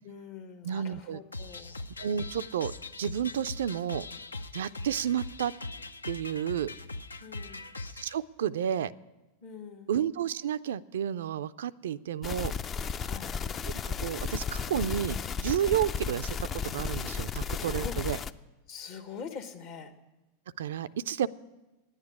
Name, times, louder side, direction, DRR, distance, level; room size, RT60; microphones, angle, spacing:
voice 1, 0.0-1.7 7.2-7.7 9.4-9.9 13.0-13.4 17.7-18.0 18.7-19.9, left 6 dB, 55° left, 6 dB, 1.2 m, -44 dB
voice 2, 0.6-1.2 2.0-2.7 3.0-4.1 4.5-5.5 6.1-6.7 7.9-8.9 9.9-12.5 13.8-18.2 20.6-21.3, right 9 dB, 65° right, 14 dB, 0.3 m, -31 dB
sound 1, 1.3-8.1, left 2 dB, 85° left, 0.4 m, -41 dB
sound 2, 12.2-18.3, left 6 dB, 30° left, 0.4 m, -34 dB
10.5 x 8.9 x 9.5 m, 1.1 s
figure-of-eight pair, 90°, 0 cm